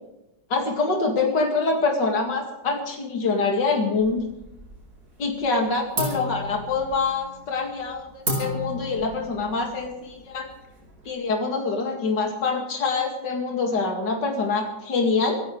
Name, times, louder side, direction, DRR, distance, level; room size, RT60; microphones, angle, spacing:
voice 1, 0.5-4.2 5.2-10.5 11.1-15.4, left 4 dB, 75° left, 1 dB, 2.8 m, -25 dB
sound 1, 4.0-4.9 5.2-5.6 5.9-11.1, equal, 60° right, 5.4 m, -33 dB
26.0 x 14.5 x 3.3 m, 0.91 s
omnidirectional pair, 1.9 m